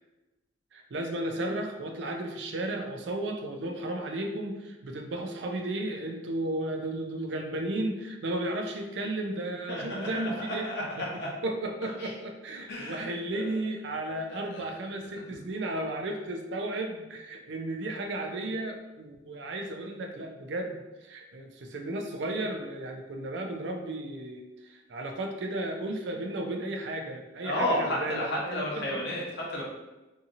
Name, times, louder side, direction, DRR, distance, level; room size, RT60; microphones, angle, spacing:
voice 1, 0.7-29.0, right 1 dB, 75° right, 3 dB, 0.4 m, -34 dB
voice 2, 9.7-11.3 12.0-12.1 12.7-13.0 14.3-14.7 15.3-15.4 27.4-29.6, left 1 dB, 65° left, -3 dB, 0.8 m, -32 dB
2.7 x 2.6 x 2.6 m, 1.1 s
head